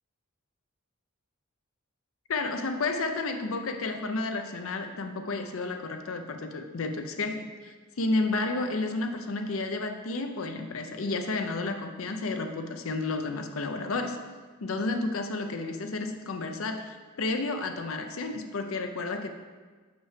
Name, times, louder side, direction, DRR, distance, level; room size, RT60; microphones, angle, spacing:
voice 1, 2.3-14.2 14.6-19.3, left 3 dB, 75° left, 6 dB, 0.6 m, -31 dB
6.0 x 5.5 x 5.0 m, 1.4 s
head